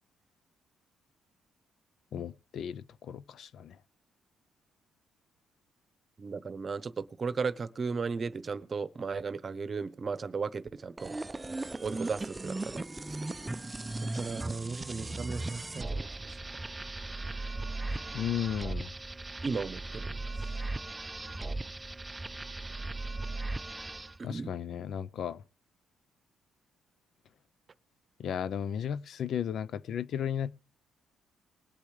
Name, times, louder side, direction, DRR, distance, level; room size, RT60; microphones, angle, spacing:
voice 1, 2.1-3.8 18.1-18.9 24.2-25.4 28.2-30.6, left 9 dB, 65° left, 0.5 m, -34 dB
voice 2, 6.2-11.1 11.8-12.8 13.1-13.3 14.0-16.4 19.4-20.1 24.2-24.5, right 5 dB, 40° right, 0.9 m, -36 dB
sound 1, 11.0-24.2, right 2 dB, 15° right, 0.5 m, -37 dB
20.5 x 8.4 x 3.2 m
cardioid pair, 90°, 0 cm